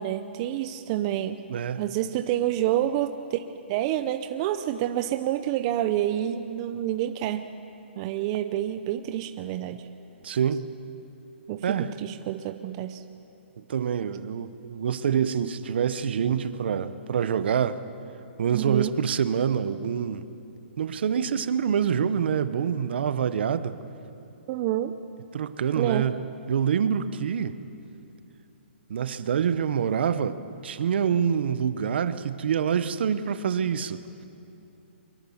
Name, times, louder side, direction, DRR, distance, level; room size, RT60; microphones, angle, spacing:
voice 1, 0.0-1.4 1.8-7.5 8.0-9.9 11.5-13.0 18.5-19.0 24.5-25.0 25.8-26.1, right 12 dB, 30° right, 9 dB, 0.7 m, -28 dB
voice 2, 1.5-1.8 10.2-10.7 11.6-11.9 13.7-17.8 18.4-20.2 20.8-23.7 25.3-26.2 26.5-27.6 28.9-34.0, right 7 dB, 60° right, 13 dB, 1.1 m, -26 dB
23.5 x 22.0 x 7.3 m, 2.9 s
hypercardioid pair, 155°, 7 cm